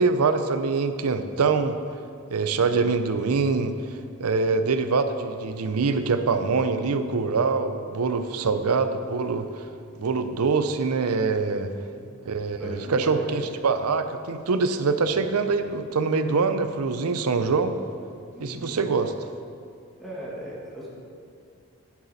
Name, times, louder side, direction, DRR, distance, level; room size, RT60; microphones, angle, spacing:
voice 1, 0.0-1.8 2.3-9.6 10.0-11.7 12.3-17.7 18.4-19.1, right 4 dB, 90° right, 10 dB, 0.6 m, -24 dB
voice 2, 8.3-8.8 11.4-12.1 12.6-13.4 18.3-18.8 20.0-20.9, equal, ahead, -7 dB, 1.6 m, -39 dB
9.7 x 8.3 x 4.1 m, 2.4 s
head